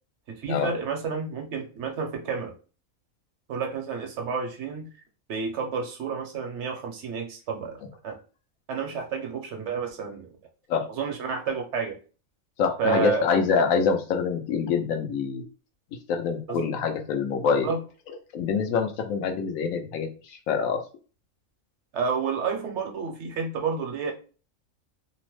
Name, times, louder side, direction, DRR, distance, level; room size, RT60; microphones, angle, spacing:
voice 1, 0.3-2.5 3.5-4.8 5.3-7.8 8.0-8.2 8.7-10.3 11.0-12.0 12.8-13.2 16.5-16.6 17.4-17.8 21.9-24.1, right 5 dB, 60° right, 3 dB, 0.9 m, -30 dB
voice 2, 12.6-15.4 16.1-17.7 18.3-20.8, left 5 dB, 80° left, 5 dB, 1.0 m, -25 dB
2.8 x 2.0 x 3.0 m, 0.37 s
omnidirectional pair, 1.4 m